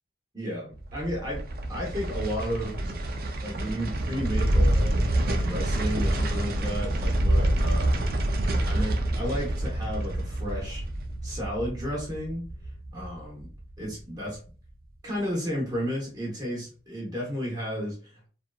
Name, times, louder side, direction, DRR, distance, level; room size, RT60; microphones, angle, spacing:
voice 1, 0.3-2.7 3.4-8.1 8.7-10.8 11.2-12.4 12.9-13.5 13.8-14.4 15.0-18.3, equal, 20° right, -4 dB, 0.8 m, -33 dB
sound 1, 0.7-13.9 14.3-14.4, right 1 dB, 55° right, 0.4 m, -27 dB
2.7 x 2.4 x 2.3 m, 0.38 s
head